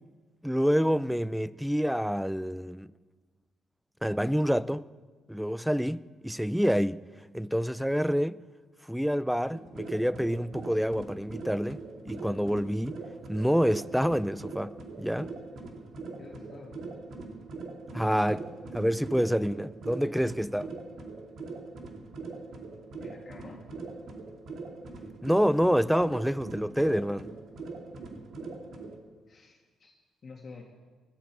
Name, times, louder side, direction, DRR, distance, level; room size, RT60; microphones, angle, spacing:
voice 1, 0.4-2.9 4.0-4.8 5.3-7.0 7.3-8.4 8.9-13.0 13.3-15.3 17.9-20.7 25.2-27.3, equal, ahead, 0.4 m, -27 dB
sound 1, 9.5-29.0, right 3 dB, 65° right, 2.4 m, -42 dB
voice 2, 16.2-16.8 23.0-23.7 29.3-29.9 30.2-30.6, left 4 dB, 45° left, 2.2 m, -48 dB
20.0 x 14.0 x 4.9 m
cardioid pair, 90°, 0 cm